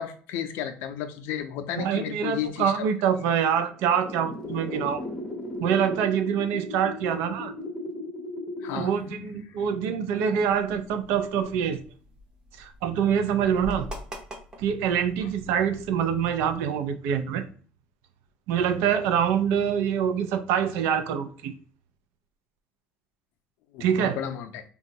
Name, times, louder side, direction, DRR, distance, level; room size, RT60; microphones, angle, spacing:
voice 1, 0.0-2.7 8.6-9.7 23.7-24.6, left 9 dB, 65° left, 0.5 m, -33 dB
voice 2, 1.8-5.0 5.6-7.5 8.7-11.8 12.6-13.9 14.6-17.4 18.5-21.6 23.8-24.2, right 8 dB, 75° right, 0.4 m, -25 dB
sound 1, 3.0-3.1 3.6-9.2 9.6-10.8 11.4-11.5, left 2 dB, 10° left, 0.6 m, -37 dB
sound 2, 10.5-16.6, left 1 dB, 20° right, 0.7 m, -44 dB
3.9 x 2.3 x 2.7 m
cardioid pair, 170°, 4 cm